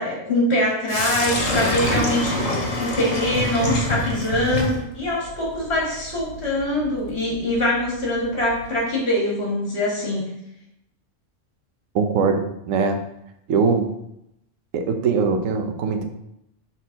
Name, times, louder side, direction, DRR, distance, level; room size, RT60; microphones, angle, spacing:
voice 1, 0.0-10.2, left 1 dB, 55° left, -3 dB, 2.2 m, -23 dB
Sink (filling or washing), 0.9-8.8, left 2 dB, 85° left, 1.6 m, -27 dB
voice 2, 11.9-13.0 13.5-13.9 14.7-16.0, right 5 dB, 90° right, 6 dB, 1.1 m, -21 dB
6.0 x 4.3 x 4.0 m, 0.80 s
omnidirectional pair, 1.3 m